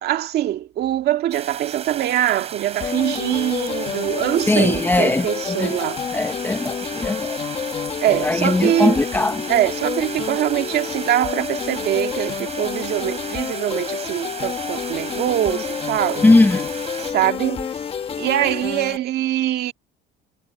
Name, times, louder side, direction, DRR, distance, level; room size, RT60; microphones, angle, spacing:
voice 1, 0.0-6.0 8.0-9.0 9.5-16.2 17.0-17.7 18.2-19.7, right 13 dB, 55° right, 2.0 m, -23 dB
sound 1, 1.3-17.1, right 7 dB, 30° right, 6.6 m, -35 dB
sound 2, 2.8-19.0, left 7 dB, 30° left, 1.3 m, -29 dB
voice 2, 4.5-5.8 6.1-7.4 8.2-9.4 16.2-16.7, left 2 dB, 10° left, 1.1 m, -19 dB
cardioid pair, 165°, 20 cm